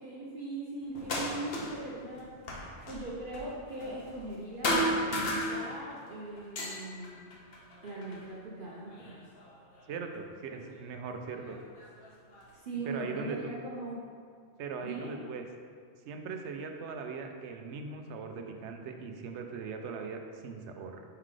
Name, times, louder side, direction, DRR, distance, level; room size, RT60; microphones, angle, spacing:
voice 1, 0.0-2.3 2.9-4.8 5.3-7.3 7.8-9.1 12.5-14.0 14.8-15.1, right 2 dB, 55° right, -5 dB, 0.8 m, -40 dB
sound 1, 0.9-1.9 2.2-4.4 4.6-6.0 6.4-8.3 8.9-9.8 10.8-10.9 11.5-12.5, equal, 60° left, 1.1 m, -34 dB
voice 2, 9.9-11.6 12.8-13.6 14.6-15.4 16.0-21.0, right 5 dB, 80° right, 4 dB, 0.9 m, -40 dB
5.6 x 3.9 x 4.8 m, 2.1 s
omnidirectional pair, 1.2 m